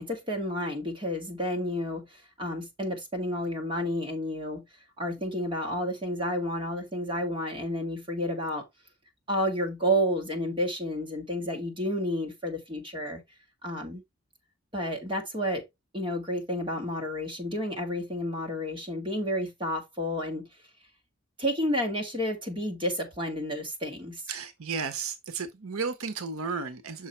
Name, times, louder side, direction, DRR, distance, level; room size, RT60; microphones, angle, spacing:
voice 1, 0.0-2.1 2.4-4.6 5.0-8.6 9.3-13.2 13.6-14.0 14.7-15.6 15.9-20.5 21.4-24.2, equal, 25° right, 2.3 m, -30 dB
voice 2, 24.3-27.1, right 5 dB, 75° right, 0.9 m, -33 dB
6.4 x 5.1 x 4.3 m
head